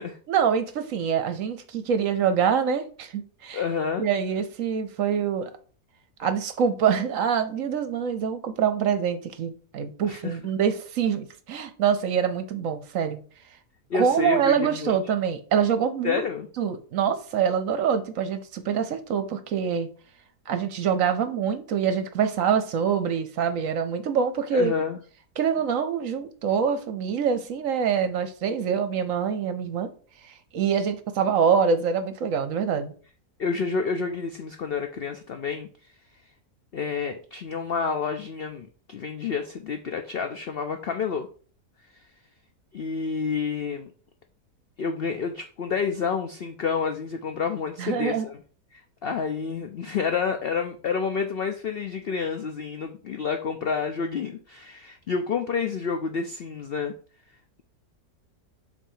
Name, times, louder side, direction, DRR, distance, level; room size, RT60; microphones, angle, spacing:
voice 1, 0.3-3.6 4.0-5.5 6.2-13.2 13.9-16.2 16.6-19.9 20.5-24.7 25.4-29.9 30.2-32.9 47.8-48.3, right 7 dB, 65° right, 0.9 m, -25 dB
voice 2, 3.5-4.0 10.0-10.4 13.9-15.0 16.0-16.5 24.5-25.0 33.4-35.7 36.7-41.3 42.7-43.9 44.8-48.4 48.7-56.9, left 5 dB, 80° left, 0.5 m, -29 dB
7.1 x 2.8 x 5.5 m
omnidirectional pair, 1.7 m